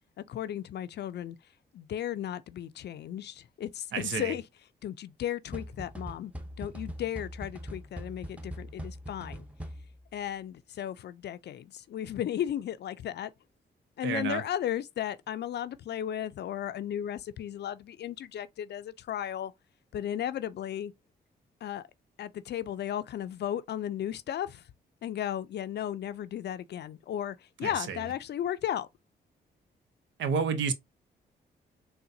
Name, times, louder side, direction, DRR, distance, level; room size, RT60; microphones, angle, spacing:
voice 1, 0.2-1.4 1.7-4.4 4.8-6.3 6.6-9.5 10.1-13.3 14.0-19.5 19.9-20.9 21.6-21.8 22.2-24.7 25.0-28.9, left 10 dB, 65° left, 0.4 m, -35 dB
voice 2, 3.9-4.3 14.0-14.4 27.6-28.0 30.2-30.7, right 6 dB, 80° right, 0.7 m, -30 dB
sound 1, 5.5-10.1, equal, 5° right, 0.7 m, -42 dB
4.0 x 2.1 x 2.6 m
cardioid pair, 60°, 19 cm